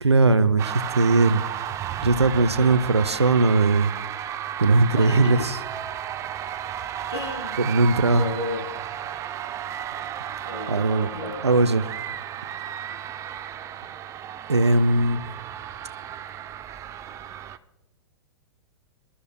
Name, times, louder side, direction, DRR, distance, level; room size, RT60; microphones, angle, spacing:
voice 1, 0.0-1.5 2.0-5.6 7.6-8.3 10.7-11.1 11.4-11.9 14.5-15.2, right 3 dB, 80° right, 12 dB, 0.6 m, -20 dB
sound 1, 0.6-17.6, right 10 dB, 20° right, 0.5 m, -34 dB
voice 2, 2.6-3.0 4.9-5.5 7.1-8.6 10.4-11.4, left 2 dB, 90° left, -2 dB, 3.2 m, -33 dB
25.5 x 12.5 x 2.2 m, 0.98 s
figure-of-eight pair, 100°, 14 cm